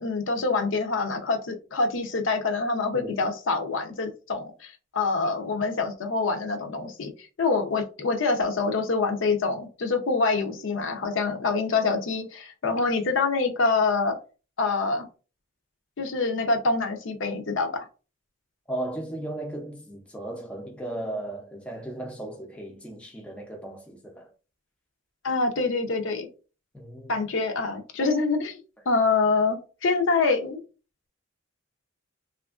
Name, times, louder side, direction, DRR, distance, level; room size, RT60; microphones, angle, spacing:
voice 1, 0.0-7.1 7.4-14.2 14.6-15.1 16.0-17.8 25.2-26.3 27.1-28.6 28.9-30.6, left 3 dB, 65° left, 0.5 m, -25 dB
voice 2, 2.9-3.3 18.7-24.3 26.7-27.1, right 1 dB, 5° left, 0.4 m, -36 dB
2.8 x 2.4 x 2.3 m
head